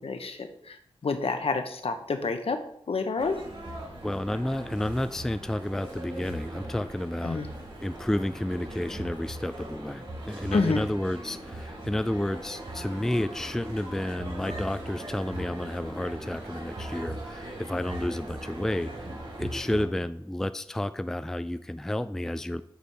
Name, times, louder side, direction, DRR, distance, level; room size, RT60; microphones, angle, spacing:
voice 1, 0.0-2.6 2.9-3.4 7.2-7.5 10.5-10.8, left 4 dB, 70° left, 7 dB, 0.9 m, -29 dB
sound 1, 3.2-19.8, right 1 dB, 60° right, 3.4 m, -40 dB
voice 2, 4.0-7.4 7.8-18.9 19.4-22.6, left 1 dB, 5° left, 12 dB, 0.3 m, -31 dB
8.3 x 4.3 x 4.8 m, 0.71 s
wide cardioid pair, 70°, 10 cm